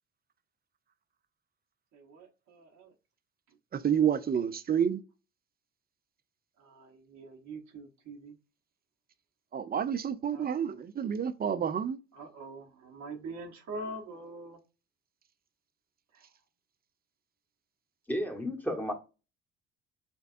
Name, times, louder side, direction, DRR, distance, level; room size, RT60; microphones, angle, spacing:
voice 1, 1.9-2.9 6.6-8.4 10.3-10.8 12.1-14.6 16.1-16.3, right 2 dB, 55° right, 1.1 m, -44 dB
voice 2, 3.7-5.0 9.5-12.0, right 8 dB, 25° right, 0.5 m, -29 dB
voice 3, 18.1-18.9, equal, 5° left, 1.3 m, -32 dB
6.9 x 2.3 x 2.5 m
hypercardioid pair, 50°, 35 cm